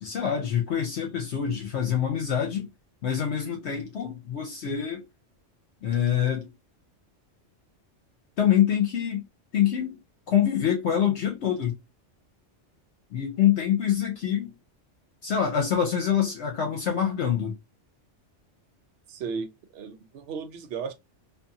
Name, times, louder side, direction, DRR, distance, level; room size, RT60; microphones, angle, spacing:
voice 1, 0.0-2.7 3.0-5.0 5.8-6.5 8.4-9.2 9.5-10.0 10.3-11.8 13.1-14.5 15.2-17.5, left 9 dB, 70° left, 0.9 m, -25 dB
voice 2, 19.1-20.9, right 5 dB, 65° right, 0.8 m, -35 dB
2.5 x 2.4 x 2.6 m
omnidirectional pair, 1.2 m